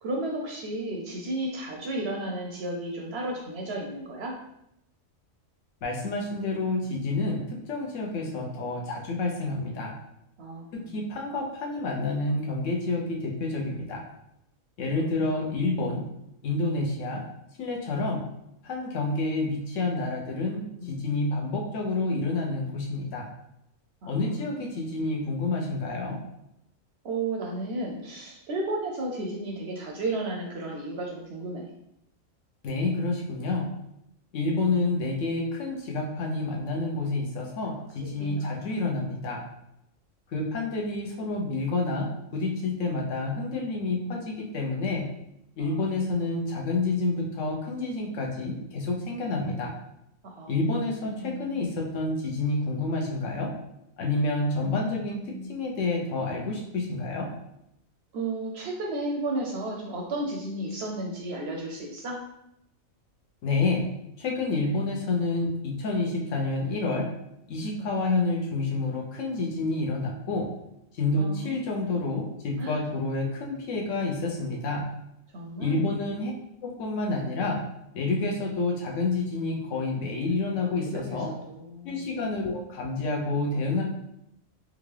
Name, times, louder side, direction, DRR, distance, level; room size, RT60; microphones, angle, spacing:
voice 1, 0.0-4.4 10.4-11.0 15.2-15.6 20.8-20.9 24.0-24.9 27.0-31.7 37.6-37.7 38.0-38.9 44.1-44.2 45.6-45.9 49.4-49.7 50.2-50.6 51.0-51.7 54.6-55.6 58.1-62.2 67.8-67.9 71.2-71.8 72.6-72.8 75.3-75.8 80.6-82.0, right 2 dB, 65° right, 0 dB, 0.7 m, -34 dB
voice 2, 5.8-9.9 10.7-14.0 14.8-16.0 16.4-17.2 17.6-18.3 18.6-23.3 24.0-26.2 32.6-33.7 34.3-39.4 40.3-45.0 45.6-49.7 50.5-53.5 54.0-55.2 55.5-57.3 63.4-63.8 64.2-67.1 67.5-70.5 70.9-74.8 75.6-76.3 76.6-77.6 77.9-81.3 81.8-83.8, left 3 dB, 70° left, 0 dB, 1.1 m, -29 dB
3.6 x 2.4 x 3.2 m, 0.80 s
omnidirectional pair, 1.4 m